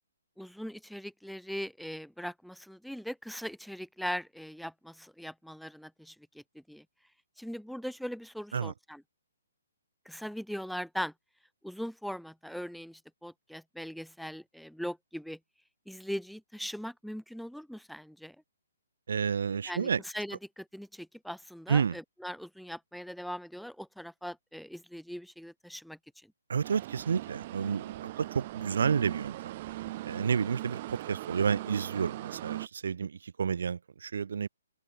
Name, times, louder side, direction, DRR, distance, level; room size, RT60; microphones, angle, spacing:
voice 1, 0.4-6.4 6.7-6.8 7.4-9.0 10.1-11.1 11.6-15.4 15.9-18.4 19.7-19.9 20.1-26.0, equal, ahead, 1.8 m, -40 dB
voice 2, 19.1-20.0 21.7-22.0 26.5-29.4 30.0-34.5, right 6 dB, 70° right, 2.6 m, -30 dB
sound 1, 26.6-32.7, right 17 dB, 35° right, 1.6 m, -40 dB
open air
hypercardioid pair, 160°, 0 cm